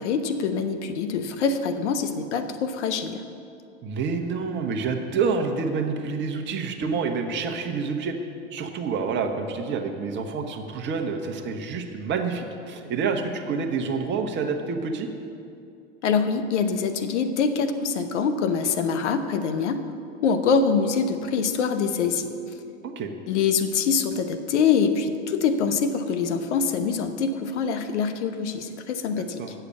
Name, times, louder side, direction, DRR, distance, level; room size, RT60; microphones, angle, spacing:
voice 1, 0.0-3.2 16.0-19.8 20.2-22.3 23.3-29.4, left 5 dB, 70° left, 9 dB, 0.9 m, -24 dB
voice 2, 3.8-8.2 8.5-15.1 22.8-23.1 29.4-29.5, right 5 dB, 30° right, 5 dB, 1.0 m, -28 dB
8.2 x 6.9 x 7.4 m, 2.5 s
hypercardioid pair, 105°, 36 cm